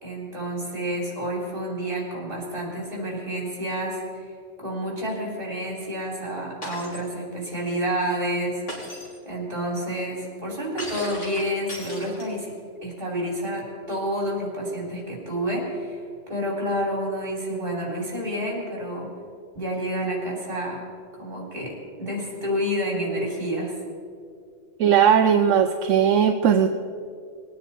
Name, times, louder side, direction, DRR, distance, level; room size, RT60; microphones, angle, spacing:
voice 1, 0.0-4.3 4.6-8.6 9.2-12.5 12.8-16.0 16.3-19.1 19.5-20.8 21.2-23.7, equal, 45° right, -3 dB, 4.1 m, -29 dB
Shatter, 6.6-7.1 8.7-9.2 10.8-12.5, left 1 dB, 70° left, 3.4 m, -37 dB
voice 2, 24.8-26.7, right 8 dB, 80° right, 7 dB, 1.0 m, -18 dB
20.5 x 9.5 x 4.4 m, 2.3 s
omnidirectional pair, 1.3 m